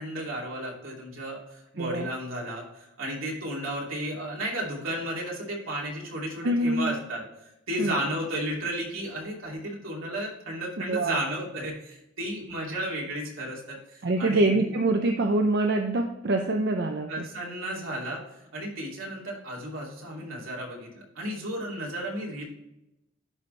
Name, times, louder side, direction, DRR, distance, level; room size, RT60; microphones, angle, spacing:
voice 1, 0.0-14.5 17.1-18.2 18.5-22.4, right 1 dB, 75° right, -3 dB, 2.7 m, -33 dB
voice 2, 1.8-2.1 6.4-7.0 7.8-7.9 10.9-11.2 14.0-17.1, right 2 dB, 55° right, 4 dB, 0.6 m, -25 dB
11.0 x 4.3 x 3.2 m, 0.89 s
head